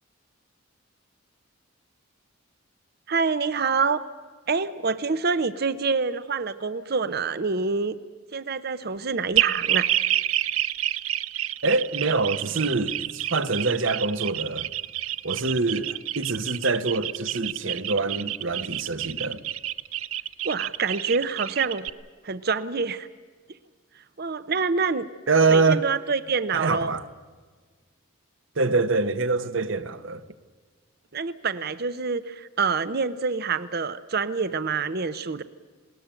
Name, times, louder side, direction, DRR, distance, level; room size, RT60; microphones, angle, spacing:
voice 1, 3.1-4.0 4.5-8.0 8.3-9.9 20.4-21.9 22.2-23.1 24.2-25.1 25.5-26.9 31.1-35.4, right 4 dB, 50° right, 0.8 m, -26 dB
sound 1, 9.3-21.9, right 12 dB, 85° right, 0.7 m, -28 dB
voice 2, 11.6-14.7 15.2-19.4 25.3-25.8 26.5-27.0 28.6-30.2, right 3 dB, 65° right, 1.2 m, -25 dB
20.5 x 19.0 x 8.9 m
head